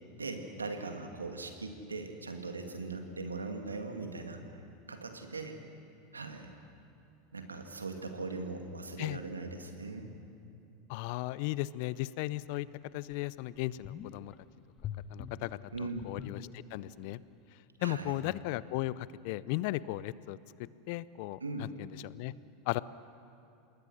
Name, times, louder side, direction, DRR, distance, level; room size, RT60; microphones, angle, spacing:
voice 1, 0.2-4.4 4.9-5.6 6.1-6.5 7.3-10.1 15.7-16.1 17.8-18.2 21.4-21.7, right 3 dB, 90° right, 5 dB, 2.2 m, -40 dB
voice 2, 10.9-12.7 12.9-14.3 15.1-15.6 16.0-17.2 17.8-20.4 20.9-22.3 22.7-22.8, left 17 dB, 60° left, 19 dB, 0.6 m, -36 dB
sound 1, 12.5-12.6 13.1-13.2 13.6-14.4 14.8-17.0 17.3-17.4, left 9 dB, 40° left, 1.0 m, -44 dB
27.5 x 20.0 x 6.3 m, 2.7 s
hypercardioid pair, 85°, 0 cm